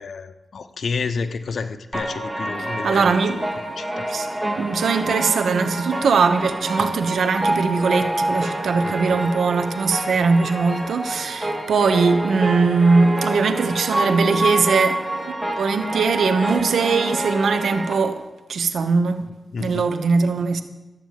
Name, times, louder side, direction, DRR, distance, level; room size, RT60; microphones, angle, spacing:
voice 1, 0.0-3.4 3.8-4.1 8.8-9.2 19.5-19.9, left 5 dB, 70° left, 0.9 m, -30 dB
sound 1, 1.9-17.9, right 1 dB, 10° right, 2.5 m, -27 dB
voice 2, 2.8-3.4 4.1-19.3 19.6-20.6, right 4 dB, 90° right, 1.1 m, -21 dB
14.0 x 8.8 x 7.5 m
cardioid pair, 75°, 0 cm